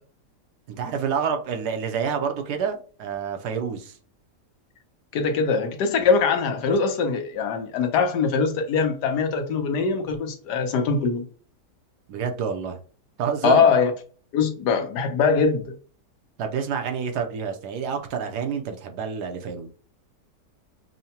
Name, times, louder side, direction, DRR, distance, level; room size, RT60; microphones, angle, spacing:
voice 1, 0.7-4.0 12.1-12.8 13.2-13.7 16.4-19.7, right 7 dB, 75° right, 1.2 m, -28 dB
voice 2, 5.1-11.2 13.4-13.9 14.3-15.7, left 5 dB, 75° left, 1.3 m, -22 dB
5.6 x 2.1 x 2.8 m
omnidirectional pair, 1.8 m